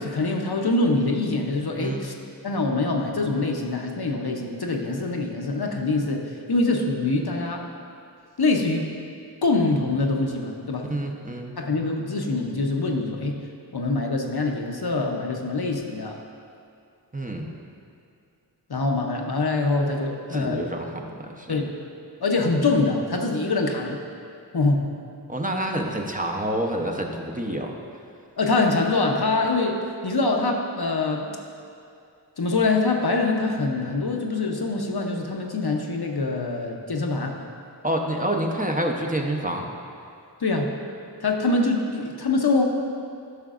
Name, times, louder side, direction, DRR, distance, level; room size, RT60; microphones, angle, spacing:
voice 1, 0.0-2.1 2.4-7.7 8.4-8.9 9.4-10.9 11.6-13.4 13.7-16.2 18.7-20.7 21.5-21.8 22.2-24.0 24.5-24.8 28.4-31.3 32.4-37.4 40.4-40.8 41.2-42.6, left 3 dB, 65° left, 2 dB, 0.7 m, -24 dB
voice 2, 10.9-11.5 17.1-17.5 20.3-21.6 25.3-27.7 37.8-39.7, right 1 dB, 20° right, 0 dB, 0.7 m, -28 dB
12.5 x 5.8 x 2.5 m, 2.5 s
wide cardioid pair, 40°, 41 cm